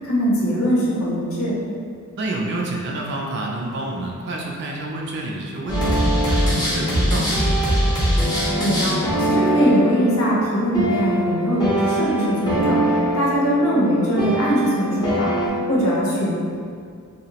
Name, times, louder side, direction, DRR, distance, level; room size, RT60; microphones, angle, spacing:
voice 1, 0.0-1.6 8.6-16.3, equal, 75° left, -6 dB, 0.6 m, -21 dB
voice 2, 2.1-6.0 6.3-7.7, right 2 dB, 50° right, -1 dB, 0.4 m, -28 dB
sound 1, 5.7-15.5, right 1 dB, 20° left, 0.7 m, -22 dB
2.8 x 2.0 x 2.8 m, 2.2 s
head